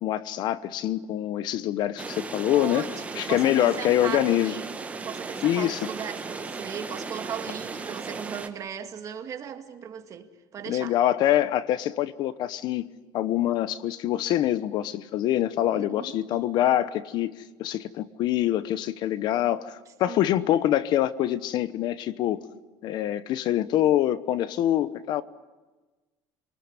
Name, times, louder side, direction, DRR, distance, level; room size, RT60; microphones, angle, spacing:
voice 1, 0.0-2.9 3.1-4.5 5.4-5.8 10.6-22.4 22.8-25.2, left 12 dB, 55° left, 1.0 m, -25 dB
sound 1, 2.0-8.5, right 4 dB, 15° right, 1.7 m, -36 dB
voice 2, 2.5-10.9 15.7-16.2 20.1-20.5, right 8 dB, 40° right, 2.1 m, -37 dB
28.0 x 20.0 x 9.8 m
cardioid pair, 140°, 9 cm